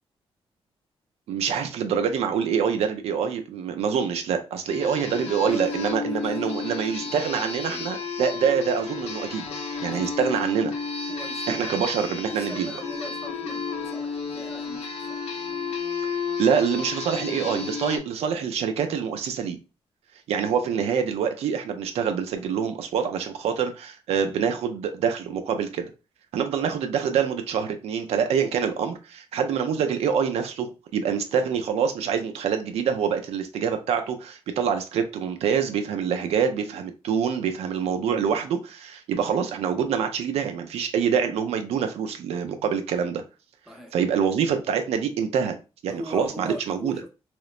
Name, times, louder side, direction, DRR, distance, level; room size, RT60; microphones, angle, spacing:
voice 1, 1.3-9.5 9.8-10.7 11.5-12.7 16.4-19.6 20.3-25.9 26.3-43.2 43.9-45.6 45.8-46.9, right 7 dB, 85° right, 0.4 m, -25 dB
sound 1, 4.7-18.0, left 5 dB, 85° left, 0.5 m, -32 dB
voice 2, 5.4-6.5 6.9-7.9 9.9-10.1 11.1-15.2 43.7-43.9 45.9-47.1, left 1 dB, 5° right, 0.6 m, -40 dB
2.9 x 2.0 x 2.3 m
cardioid pair, 95°, 10 cm